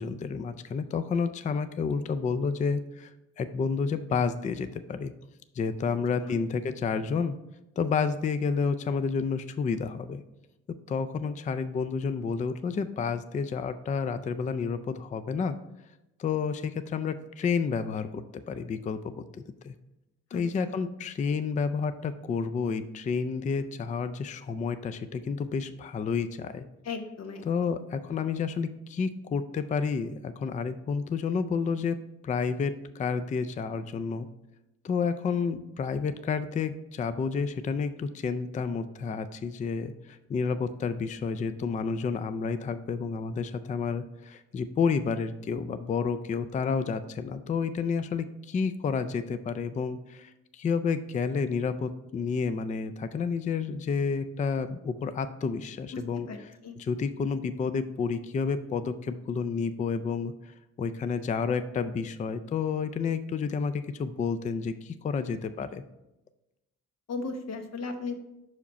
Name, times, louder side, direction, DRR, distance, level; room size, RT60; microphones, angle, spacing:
voice 1, 0.0-3.1 3.4-5.1 5.6-7.4 7.8-10.2 10.9-15.6 16.2-19.7 20.3-26.7 27.5-32.0 32.2-34.3 34.8-56.3 56.8-65.8, left 5 dB, 25° left, 11 dB, 0.3 m, -30 dB
voice 2, 20.3-20.8 26.8-27.5 55.9-56.4 56.6-56.8 67.1-68.1, left 4 dB, 60° left, 6 dB, 1.0 m, -36 dB
5.6 x 4.9 x 4.1 m, 0.92 s
cardioid pair, 90°, 30 cm